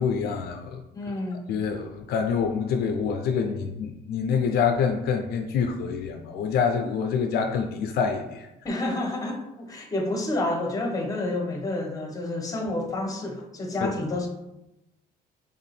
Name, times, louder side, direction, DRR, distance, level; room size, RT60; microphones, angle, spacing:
voice 1, 0.0-0.8 1.5-8.5 13.8-13.9, left 6 dB, 70° left, 5 dB, 0.4 m, -26 dB
voice 2, 0.9-1.4 8.6-14.3, left 2 dB, 20° left, 3 dB, 0.8 m, -29 dB
3.4 x 2.7 x 4.1 m, 0.92 s
cardioid pair, 110°, 17 cm